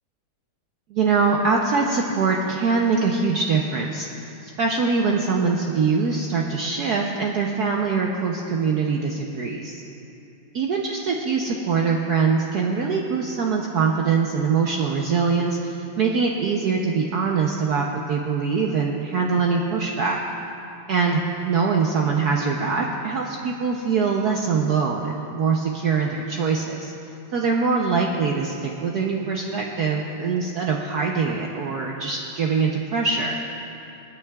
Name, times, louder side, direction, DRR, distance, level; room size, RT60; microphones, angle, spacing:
voice 1, 0.9-4.1 4.4-9.8 10.5-20.2 20.9-21.2 21.4-26.9 27.3-33.4, right 5 dB, 65° right, -1 dB, 1.0 m, -23 dB
27.5 x 9.3 x 2.3 m, 2.8 s
omnidirectional pair, 2.2 m